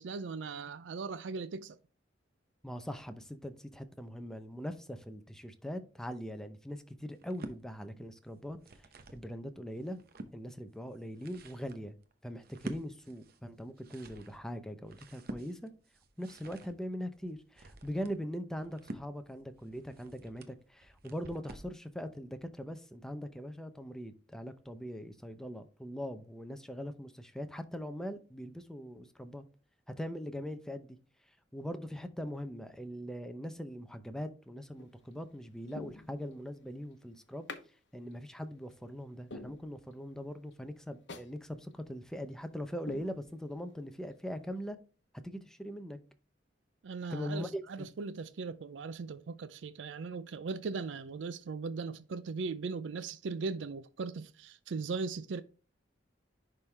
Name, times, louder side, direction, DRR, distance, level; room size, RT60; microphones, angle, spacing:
voice 1, 0.0-1.8 46.8-55.4, right 4 dB, 75° right, 0.4 m, -38 dB
voice 2, 2.6-8.6 9.1-10.0 10.3-11.9 12.2-15.7 16.2-29.4 29.9-31.0 31.5-37.5 37.9-44.8 45.1-46.0 47.1-47.9, equal, 5° left, 0.7 m, -41 dB
sound 1, 7.1-7.6 8.4-9.3 9.7-10.4 10.9-21.8, right 1 dB, 55° right, 0.8 m, -49 dB
sound 2, 34.7-35.1 35.7-36.6 37.5-37.7 38.1-38.2 38.7-38.8 39.3-40.2 40.5-40.6 41.1-41.4 41.7-41.8 42.3-42.5 42.9-43.7 44.1-44.2, left 3 dB, 70° left, 0.9 m, -47 dB
10.5 x 3.7 x 3.3 m
head